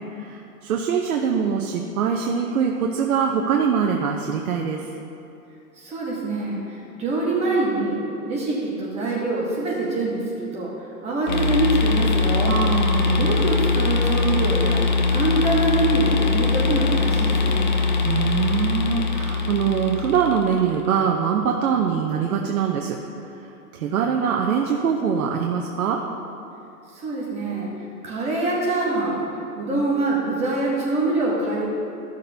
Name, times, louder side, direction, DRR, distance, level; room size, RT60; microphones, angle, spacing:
voice 1, 0.1-4.9 12.4-13.3 18.0-23.0 23.3-26.0, right 7 dB, 65° right, 2 dB, 0.8 m, -23 dB
voice 2, 5.8-10.7 11.0-12.6 13.1-14.8 15.1-17.7 26.9-27.7 28.0-29.2 29.6-31.7, right 2 dB, 15° right, -5 dB, 1.0 m, -24 dB
sound 1, 11.3-20.7, left 4 dB, 35° left, 0.4 m, -22 dB
14.0 x 6.5 x 2.7 m, 2.8 s
hypercardioid pair, 150°, 47 cm